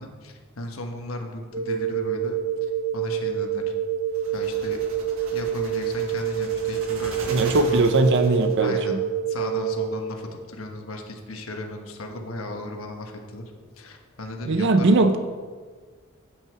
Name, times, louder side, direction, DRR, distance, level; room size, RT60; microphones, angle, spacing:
voice 1, 0.0-3.6 4.3-4.8 5.3-7.8 8.6-9.0 9.3-14.9, left 1 dB, 80° left, 3 dB, 1.3 m, -36 dB
sound 1, 1.5-9.9, right 8 dB, 45° right, 1.7 m, -27 dB
sound 2, 4.1-8.7, right 2 dB, 90° right, 1.5 m, -40 dB
voice 2, 7.3-9.0 14.5-15.2, right 2 dB, 60° right, 8 dB, 0.6 m, -20 dB
8.7 x 7.8 x 4.8 m, 1.5 s
head